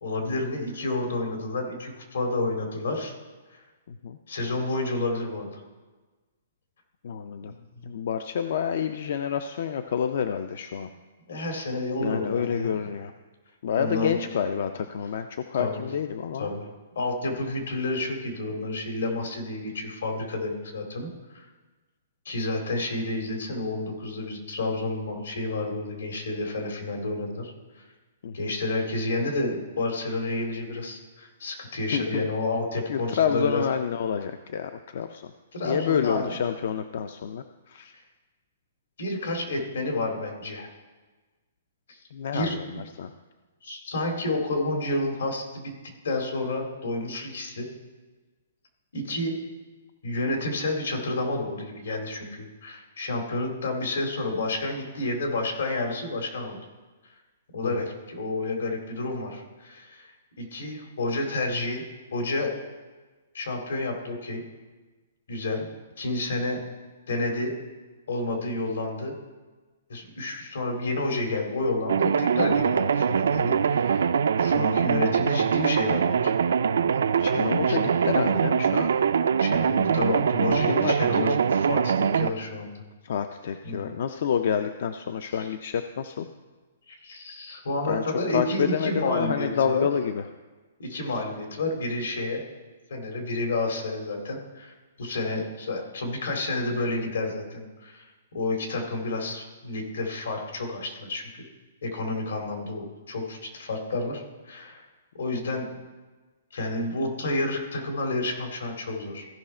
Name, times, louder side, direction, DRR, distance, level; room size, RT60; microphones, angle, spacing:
voice 1, 0.0-3.1 3.5-3.6 4.3-5.6 7.8-7.9 11.3-12.7 13.8-14.3 15.6-15.9 16.4-16.7 16.9-21.5 22.2-27.5 28.3-33.6 35.5-36.4 39.0-40.7 42.3-42.5 43.6-45.7 46.0-47.7 48.9-49.4 50.0-56.6 57.5-61.8 62.1-62.5 63.3-64.4 65.3-65.7 66.0-66.6 67.1-67.5 68.1-69.1 69.9-74.1 74.4-76.3 77.7-77.8 78.1-78.2 79.4-82.8 83.6-83.8 86.9-89.8 90.8-92.4 92.9-98.1 98.3-101.4 101.8-104.8 105.2-105.7 106.5-109.3, left 2 dB, 80° left, 3 dB, 2.5 m, -30 dB
voice 2, 3.9-4.2 7.0-7.5 7.9-10.9 12.0-13.1 13.6-16.5 28.2-28.5 31.9-32.3 32.9-35.3 35.6-37.9 42.1-43.1 57.6-57.8 77.2-78.9 80.7-81.3 83.0-86.3 87.8-90.2 105.3-105.4, left 8 dB, 50° left, 9 dB, 0.4 m, -28 dB
sound 1, 71.9-82.3, right 7 dB, 75° right, 0.4 m, -23 dB
15.0 x 5.6 x 4.3 m, 1.3 s
hypercardioid pair, 175°, 0 cm